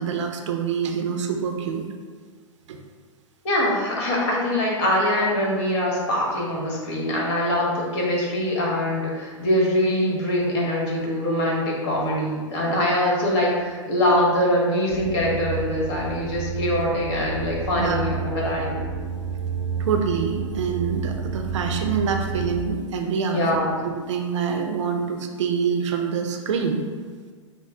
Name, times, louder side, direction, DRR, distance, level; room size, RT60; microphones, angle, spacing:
voice 1, 0.0-1.9 2.7-2.8 17.8-18.0 19.8-23.4 24.1-26.8, right 6 dB, 65° right, 4 dB, 0.5 m, -26 dB
voice 2, 3.4-18.8 23.3-23.8, left 1 dB, 55° left, -3 dB, 1.3 m, -23 dB
sound 1, 14.9-22.6, right 5 dB, 25° right, 0.5 m, -30 dB
5.8 x 2.0 x 3.5 m, 1.5 s
hypercardioid pair, 105°, 17 cm